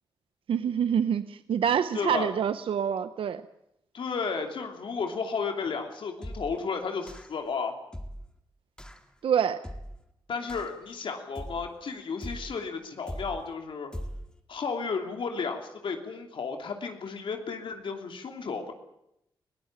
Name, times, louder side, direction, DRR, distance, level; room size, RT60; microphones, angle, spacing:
voice 1, 0.5-3.4 9.2-9.6, right 8 dB, 85° right, 12 dB, 0.8 m, -26 dB
voice 2, 1.9-2.3 3.9-7.7 10.3-13.9 14.5-18.7, left 5 dB, 70° left, 4 dB, 2.9 m, -33 dB
sound 1, 6.2-6.6 7.1-7.5 7.9-8.3 8.8-9.1 9.6-10.1 10.5-10.9 11.4-11.8 12.2-12.6 13.1-13.5 13.9-14.4, equal, 10° left, 2.1 m, -40 dB
20.5 x 18.0 x 8.8 m, 0.81 s
cardioid pair, 95°, 9 cm